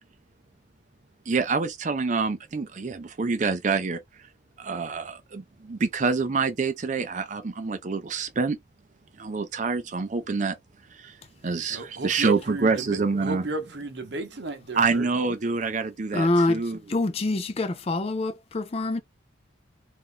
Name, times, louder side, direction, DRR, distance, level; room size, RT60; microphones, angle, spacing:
voice 1, 1.3-4.0 4.6-8.6 9.2-10.5 10.9-11.2 11.4-13.5 14.7-16.8, right 4 dB, 40° right, 0.4 m, -26 dB
voice 2, 11.7-12.9 13.2-15.1, right 2 dB, 60° right, 0.8 m, -33 dB
voice 3, 16.1-16.6 16.9-19.0, left 2 dB, 30° left, 0.4 m, -25 dB
3.0 x 2.6 x 3.7 m
head